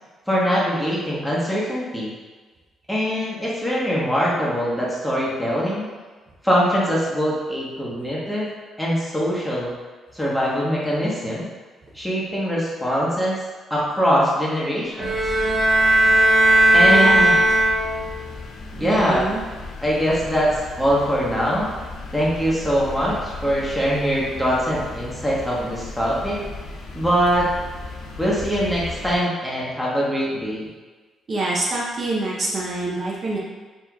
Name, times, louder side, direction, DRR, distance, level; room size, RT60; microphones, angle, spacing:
voice 1, 0.3-2.1 2.9-5.9 6.4-8.5 8.8-9.7 10.1-11.5 11.9-13.4 13.7-15.2 16.7-17.4 18.7-19.2 19.8-21.7 22.1-26.4 26.9-27.5 28.2-30.7, equal, 5° left, -6 dB, 1.1 m, -22 dB
sound 1, 15.0-29.2, left 2 dB, 70° left, 0.5 m, -36 dB
sound 2, 15.0-18.2, right 1 dB, 15° right, 0.9 m, -16 dB
voice 2, 16.9-17.4 18.8-19.4 31.3-33.4, right 2 dB, 45° right, -5 dB, 0.6 m, -26 dB
4.3 x 2.8 x 2.3 m, 1.3 s
cardioid pair, 90°, 0 cm